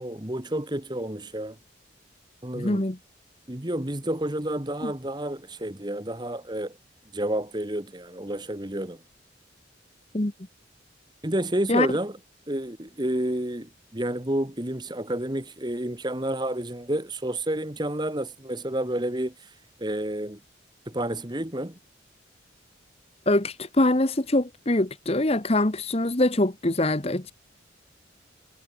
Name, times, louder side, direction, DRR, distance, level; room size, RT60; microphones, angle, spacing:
voice 1, 0.0-1.6 2.4-2.8 3.5-6.8 7.1-9.0 11.2-12.1 12.5-19.5 19.8-20.4 20.9-21.8, right 1 dB, 20° right, 1.7 m, -30 dB
voice 2, 2.5-3.0 4.8-4.9 10.1-10.3 11.7-11.9 23.3-27.3, left 1 dB, 30° left, 1.2 m, -23 dB
head